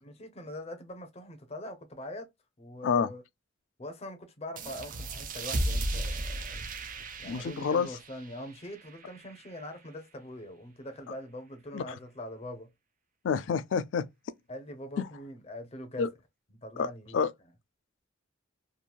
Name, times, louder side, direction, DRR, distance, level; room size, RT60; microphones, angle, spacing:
voice 1, 0.0-2.3 2.6-3.2 3.8-6.6 7.2-12.7 14.5-16.1 16.5-17.2, left 1 dB, 35° left, 0.6 m, -43 dB
sound 1, 4.6-9.8, right 1 dB, 45° right, 0.5 m, -36 dB
voice 2, 7.2-7.9 11.7-11.8 13.2-14.1 15.0-15.1 16.0-16.1 16.8-17.3, left 6 dB, 70° left, 0.3 m, -28 dB
2.9 x 2.6 x 2.2 m
head